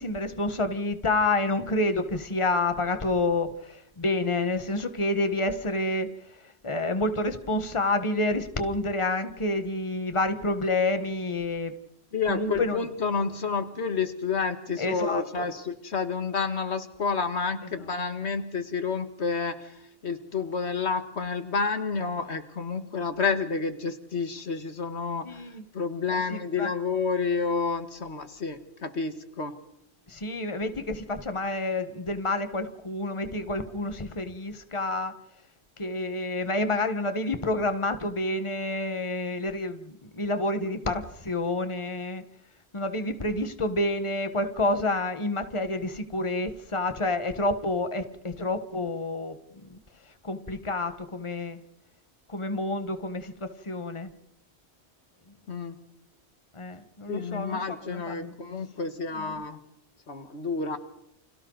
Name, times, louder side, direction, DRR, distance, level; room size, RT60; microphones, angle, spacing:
voice 1, 0.0-11.7 12.3-12.9 14.8-15.5 25.2-25.6 26.1-26.7 30.1-35.1 35.8-42.2 42.7-49.4 49.6-49.8 50.2-51.6 52.3-54.1 56.5-58.3 59.1-59.4, left 2 dB, 30° left, 9 dB, 1.5 m, -29 dB
voice 2, 12.1-19.7 20.0-25.3 25.7-29.5 55.5-55.7 57.1-59.6 60.1-60.8, left 5 dB, 85° left, 9 dB, 1.9 m, -29 dB
30.0 x 27.0 x 4.0 m, 0.76 s
omnidirectional pair, 1.1 m